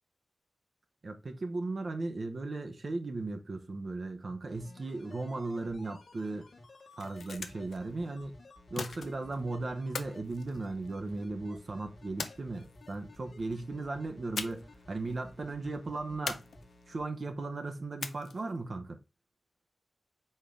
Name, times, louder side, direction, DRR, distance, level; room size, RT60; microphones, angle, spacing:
voice 1, 1.0-6.5 7.0-8.3 8.7-16.4 16.9-19.0, right 3 dB, 55° right, 0.7 m, -37 dB
sound 1, 4.5-17.0 17.3-17.4, left 2 dB, 70° left, 1.1 m, -54 dB
sound 2, 6.8-7.8 8.8-9.4 9.9-11.2 12.2-13.0 14.4-14.8 15.1-15.2 16.3-17.0 18.0-18.6, left 5 dB, 85° left, 0.4 m, -40 dB
4.4 x 3.6 x 3.2 m
cardioid pair, 70°, 0 cm